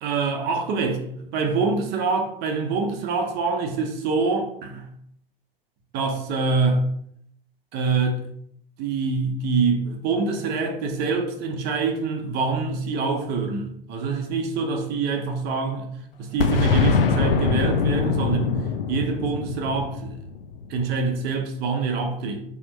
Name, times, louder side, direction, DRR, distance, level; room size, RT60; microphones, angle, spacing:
voice 1, 0.0-4.9 5.9-6.8 7.7-8.2 8.8-15.9 16.2-18.5 18.9-20.2 20.7-22.4, right 4 dB, 35° right, 0.7 m, -25 dB
Boom, 16.4-21.1, left 5 dB, 65° left, 0.5 m, -23 dB
3.5 x 2.8 x 4.5 m
figure-of-eight pair, 90°, 30 cm